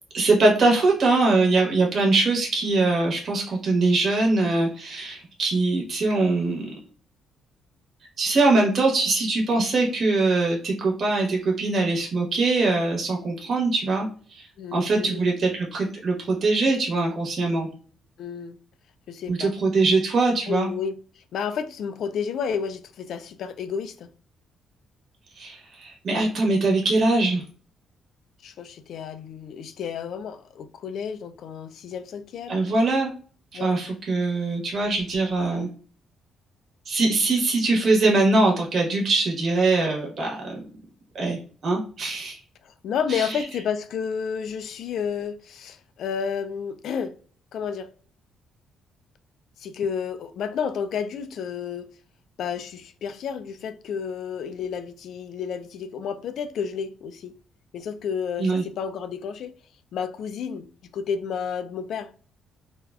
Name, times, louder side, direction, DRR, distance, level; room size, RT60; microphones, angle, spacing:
voice 1, 0.1-6.7 8.2-17.7 19.3-20.7 25.4-27.4 32.5-33.1 33.5-35.7 36.9-40.7 41.1-42.4 43.1-43.4 58.4-58.6, right 3 dB, 55° right, 1.0 m, -22 dB
voice 2, 14.6-15.2 18.2-18.6 19.1-19.5 20.5-24.1 28.4-32.6 33.5-33.8 42.6-47.1 47.5-47.9 49.6-51.9 52.4-57.3 57.7-59.5 59.9-60.7 60.9-62.1, left 7 dB, 70° left, 0.3 m, -31 dB
3.3 x 2.2 x 2.3 m
cardioid pair, 90°, 0 cm